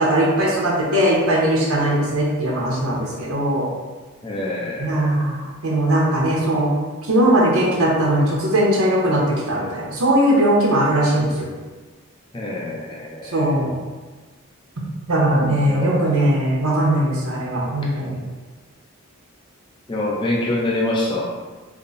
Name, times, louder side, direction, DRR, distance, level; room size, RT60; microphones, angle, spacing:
voice 1, 0.0-3.7 4.8-6.7 7.1-9.2 9.5-11.5 13.3-13.7 15.1-18.2, right 1 dB, 80° right, -4 dB, 0.9 m, -19 dB
voice 2, 4.2-5.2 12.3-13.6 15.6-16.0 19.9-21.3, left 1 dB, 20° left, -3 dB, 0.5 m, -25 dB
3.5 x 2.2 x 4.0 m, 1.3 s
head